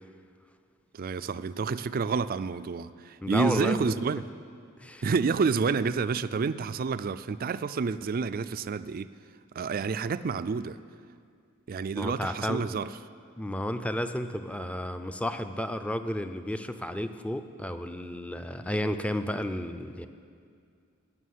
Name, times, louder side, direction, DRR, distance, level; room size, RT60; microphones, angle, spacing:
voice 1, 0.9-4.2 5.0-9.1 9.5-10.8 11.7-13.0, right 5 dB, 45° right, 14 dB, 0.4 m, -29 dB
voice 2, 3.2-4.0 4.8-5.0 11.9-12.6 13.4-20.1, left 1 dB, 5° left, 9 dB, 0.5 m, -32 dB
17.5 x 6.4 x 9.4 m, 2.3 s
head